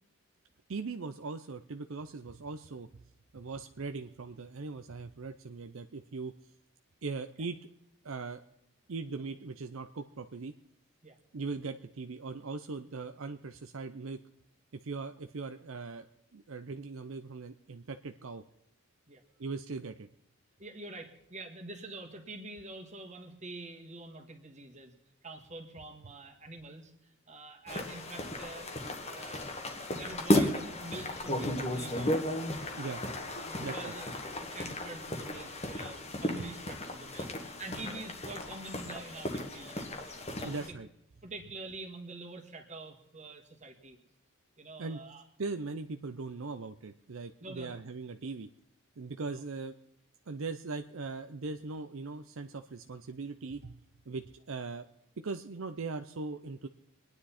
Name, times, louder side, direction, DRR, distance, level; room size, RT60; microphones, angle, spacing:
voice 1, 0.7-3.0 3.3-6.3 7.0-7.6 8.0-8.4 8.9-10.5 11.3-14.2 14.8-18.4 19.4-20.1 32.8-33.0 33.6-33.9 40.4-40.9 44.8-45.0 45.4-48.5 49.0-49.7 50.3-53.8 54.1-54.9 55.2-56.7, right 4 dB, 65° right, 8 dB, 0.6 m, -40 dB
voice 2, 20.6-24.9 25.2-29.4 29.9-32.3 32.9-33.1 33.4-34.1 34.4-40.1 40.4-40.7 41.2-44.0 44.6-45.2 47.4-47.8 49.3-49.4, right 2 dB, 30° right, 4 dB, 1.8 m, -46 dB
sound 1, 27.7-40.7, left 1 dB, 30° left, 1.5 m, -34 dB
25.5 x 9.9 x 4.3 m, 0.80 s
head